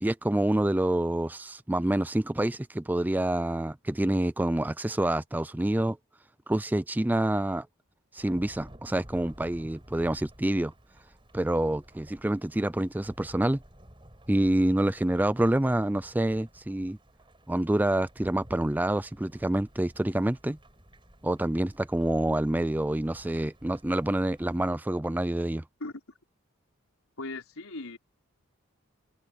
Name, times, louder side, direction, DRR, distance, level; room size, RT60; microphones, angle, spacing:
voice 1, 0.0-6.0 6.5-7.7 8.1-10.7 11.3-13.6 14.3-17.0 17.5-20.6 21.2-25.6, right 1 dB, 10° right, 0.3 m, -27 dB
Thunderstorm / Rain, 8.2-24.7, equal, 25° right, 4.7 m, -53 dB
voice 2, 27.2-28.0, left 2 dB, 80° left, 4.3 m, -38 dB
head